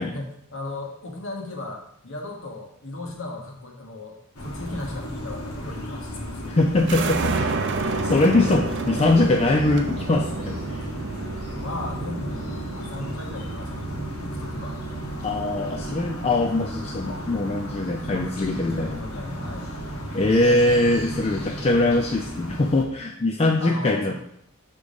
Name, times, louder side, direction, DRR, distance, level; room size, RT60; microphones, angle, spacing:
voice 1, 0.0-6.5 11.5-14.7 16.5-16.7 18.0-19.7 23.6-24.1, left 2 dB, 60° left, 2 dB, 1.2 m, -36 dB
sound 1, 4.3-22.8, equal, 80° left, 1.3 m, -34 dB
voice 2, 6.4-7.5 7.8-10.9 15.2-19.0 20.1-24.1, left 2 dB, 30° left, 2 dB, 0.3 m, -22 dB
sound 2, 6.8-20.3, right 3 dB, 50° right, 0.5 m, -33 dB
6.8 x 3.7 x 5.0 m, 0.71 s
head